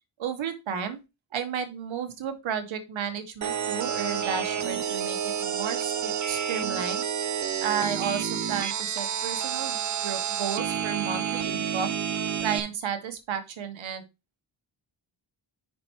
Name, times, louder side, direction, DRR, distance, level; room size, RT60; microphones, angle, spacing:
voice 1, 0.2-1.0 1.3-7.0 7.6-12.0 12.4-14.0, right 7 dB, 85° right, 8 dB, 1.5 m, -33 dB
sound 1, 3.4-12.6, right 8 dB, 40° right, 0.6 m, -29 dB
5.6 x 5.0 x 4.6 m, 0.26 s
cardioid pair, 95°, 46 cm